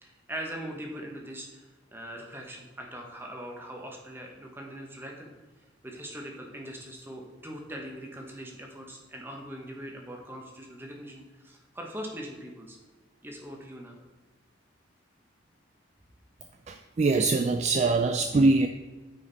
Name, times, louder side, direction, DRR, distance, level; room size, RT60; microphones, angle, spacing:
voice 1, 0.0-1.6 1.9-5.3 5.8-12.8 13.2-14.0, equal, 10° right, 0 dB, 1.2 m, -41 dB
voice 2, 16.7-18.7, right 3 dB, 35° right, 7 dB, 0.3 m, -23 dB
9.2 x 5.0 x 4.1 m, 1.3 s
head